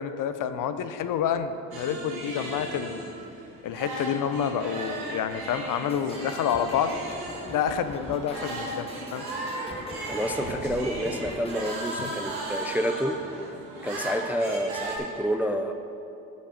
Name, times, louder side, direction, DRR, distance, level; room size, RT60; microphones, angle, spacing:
voice 1, 0.0-3.0 3.6-6.9 7.5-9.3 12.0-12.1, left 8 dB, 55° left, 11 dB, 0.6 m, -28 dB
sound 1, 1.7-15.0, right 2 dB, 70° right, 1.9 m, -36 dB
sound 2, 5.9-12.3, left 2 dB, 15° left, 0.7 m, -43 dB
sound 3, 6.6-13.5, right 3 dB, 90° right, 1.2 m, -47 dB
voice 2, 10.1-13.2 13.8-15.7, equal, 5° right, 6 dB, 0.4 m, -29 dB
6.5 x 5.2 x 7.1 m, 2.7 s
supercardioid pair, 65°, 39 cm